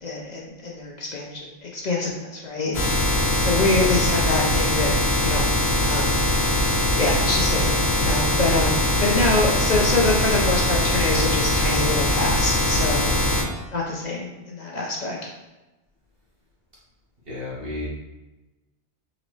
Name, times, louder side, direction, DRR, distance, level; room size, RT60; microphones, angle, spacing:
voice 1, 0.0-5.5 5.8-6.1 7.0-13.1 13.7-15.2, left 2 dB, 50° left, -2 dB, 0.7 m, -25 dB
sound 1, 2.7-13.4, left 1 dB, 90° left, 1.1 m, -21 dB
voice 2, 17.3-17.9, left 2 dB, 65° right, -6 dB, 1.5 m, -32 dB
3.9 x 3.0 x 3.1 m, 1.1 s
omnidirectional pair, 1.0 m